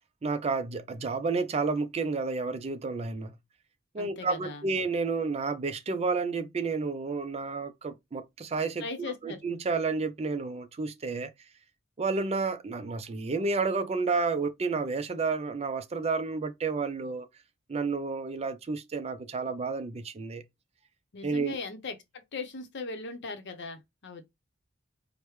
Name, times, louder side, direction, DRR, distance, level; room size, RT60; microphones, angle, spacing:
voice 1, 0.2-3.3 3.9-8.8 9.2-11.3 12.0-17.3 17.7-20.4 21.2-21.6, right 4 dB, 30° right, 0.4 m, -30 dB
voice 2, 4.0-4.7 8.8-9.4 21.1-24.2, left 3 dB, 60° left, 0.7 m, -39 dB
4.8 x 2.1 x 3.1 m
head